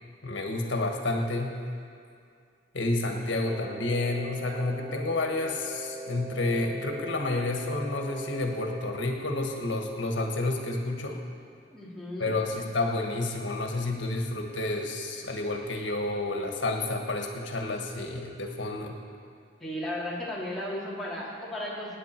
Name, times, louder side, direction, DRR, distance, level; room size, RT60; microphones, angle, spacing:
voice 1, 0.2-1.6 2.7-11.2 12.2-18.9, left 2 dB, 80° left, 2 dB, 1.5 m, -30 dB
Wind instrument woodwind instrument, 3.4-9.2, right 2 dB, 25° right, 0.6 m, -41 dB
voice 2, 11.7-12.3 19.6-22.0, left 1 dB, ahead, -7 dB, 3.0 m, -35 dB
24.5 x 9.5 x 4.5 m, 2.3 s
head